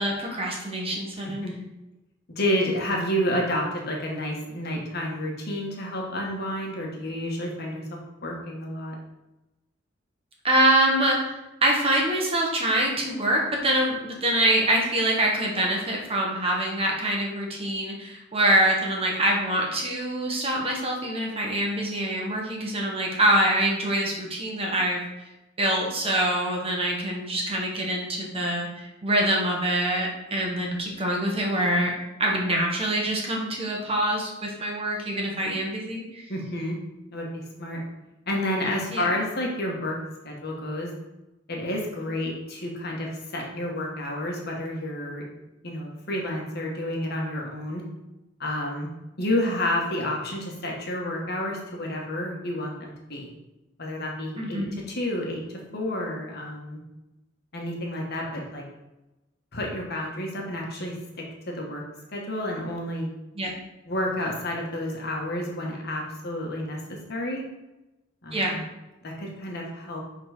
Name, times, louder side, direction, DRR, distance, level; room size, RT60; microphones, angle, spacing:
voice 1, 0.0-1.5 10.4-11.2 11.6-25.0 25.6-31.9 32.2-36.3 38.9-39.1 54.4-54.8 63.4-63.5 68.3-68.6, right 1 dB, 30° right, -1 dB, 1.5 m, -25 dB
voice 2, 2.3-7.8 8.2-8.9 36.3-36.8 37.1-37.8 38.3-40.0 40.2-40.9 41.5-45.3 45.6-47.8 48.4-48.9 49.2-53.3 53.8-55.4 55.7-56.8 57.5-58.6 59.5-61.0 61.5-61.8 62.1-63.1 63.8-67.4 68.2-68.6 69.0-70.0, left 1 dB, 55° left, -1 dB, 1.6 m, -30 dB
7.2 x 4.0 x 5.1 m, 0.99 s
head